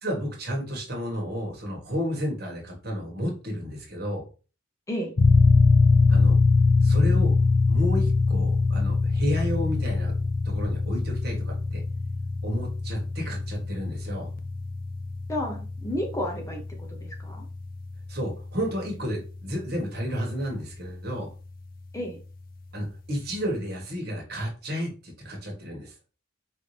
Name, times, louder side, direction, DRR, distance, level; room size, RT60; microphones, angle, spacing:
voice 1, 0.0-4.2 6.1-6.4 6.8-7.3 7.7-10.1 10.4-11.8 12.4-14.3 18.1-21.3 22.7-25.9, equal, 50° right, 0 dB, 1.4 m, -31 dB
sound 1, 5.2-19.6, left 3 dB, 45° left, 0.5 m, -23 dB
voice 2, 15.3-17.5 21.9-22.2, equal, 15° left, 1 dB, 0.7 m, -32 dB
5.1 x 2.7 x 3.3 m, 0.35 s
head